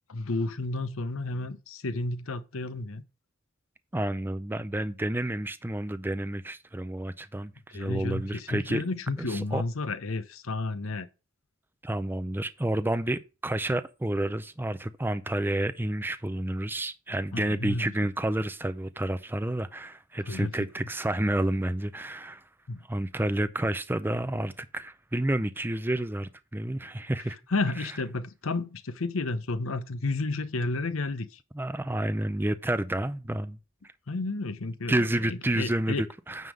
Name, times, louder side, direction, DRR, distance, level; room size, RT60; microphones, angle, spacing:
voice 1, 0.1-3.0 7.7-11.1 17.3-17.9 20.3-20.5 22.7-22.8 27.5-31.3 34.1-36.0, left 2 dB, 80° left, 0.8 m, -31 dB
voice 2, 3.9-8.8 9.2-9.6 11.8-22.4 22.9-27.4 27.8-27.9 31.5-33.6 34.9-36.5, right 1 dB, 10° right, 0.5 m, -30 dB
9.3 x 3.6 x 6.4 m
head